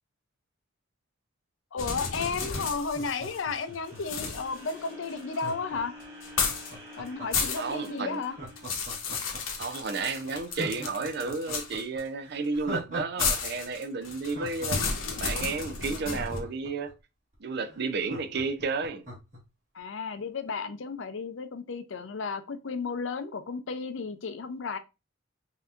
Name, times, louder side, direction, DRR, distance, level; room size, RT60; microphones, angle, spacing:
voice 1, 1.7-5.9 6.9-8.3 19.7-24.8, left 4 dB, 70° left, 0.5 m, -33 dB
sound 1, 1.8-3.6 4.0-5.5 6.2-6.7 7.1-7.9 8.2-12.0 13.2-16.4, left 5 dB, 90° left, 1.0 m, -32 dB
sound 2, 2.1-10.2, left 1 dB, 15° right, 1.6 m, -49 dB
Laughter, 2.8-4.5 5.3-7.5 8.2-9.6 10.0-10.1 10.5-13.3 13.5-13.6 14.0-16.9 17.3-17.4 17.6-19.4 19.8-19.9, right 1 dB, 40° right, 2.0 m, -41 dB
voice 2, 7.6-8.2 9.6-14.8 15.2-16.9 17.4-19.0, right 4 dB, 55° right, 0.5 m, -32 dB
5.6 x 2.7 x 2.5 m
head